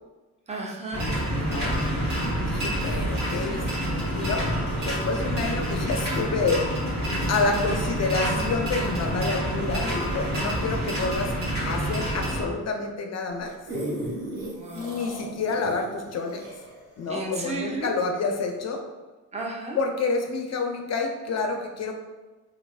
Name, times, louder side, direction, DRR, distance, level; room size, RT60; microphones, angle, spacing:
voice 1, 0.5-1.1 14.4-15.0 17.1-17.9 19.3-19.8, right 2 dB, 15° right, -2 dB, 0.6 m, -33 dB
sound 1, 0.9-12.5, equal, 35° right, 1.3 m, -27 dB
voice 2, 1.4-1.8 2.5-3.7 4.1-4.5 4.8-6.6 7.3-11.3 11.6-13.5 14.7-16.4 17.0-18.8 19.8-21.9, left 4 dB, 35° left, 4 dB, 0.5 m, -28 dB
sound 2, 13.3-18.0 18.5-18.6, right 1 dB, 60° right, 1.0 m, -36 dB
3.1 x 2.0 x 2.4 m, 1.2 s
hypercardioid pair, 45°, 48 cm